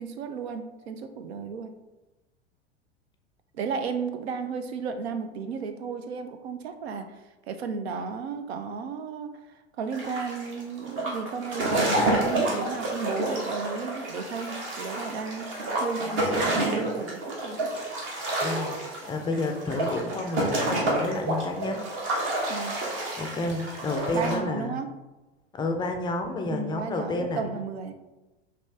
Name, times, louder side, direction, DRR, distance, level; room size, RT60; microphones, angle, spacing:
voice 1, 0.0-1.7 3.5-7.2 7.5-9.4 9.8-17.6 22.5-22.8 24.1-24.9 26.5-27.9, right 5 dB, 70° right, 8 dB, 0.6 m, -34 dB
sound 1, 9.9-24.4, right 1 dB, 35° right, 1.3 m, -29 dB
voice 2, 18.4-18.8 19.1-21.8 23.2-24.7 25.6-27.4, left 2 dB, 15° left, 5 dB, 0.4 m, -30 dB
5.2 x 2.8 x 3.3 m, 1.1 s
figure-of-eight pair, 85°, 33 cm